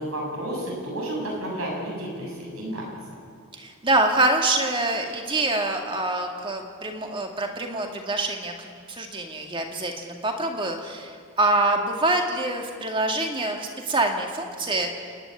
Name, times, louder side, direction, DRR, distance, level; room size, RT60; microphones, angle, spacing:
voice 1, 0.0-2.9, right 1 dB, 70° right, -2 dB, 7.5 m, -31 dB
voice 2, 3.5-14.9, right 2 dB, 25° right, 3 dB, 2.1 m, -25 dB
27.5 x 10.5 x 9.8 m, 2.3 s
head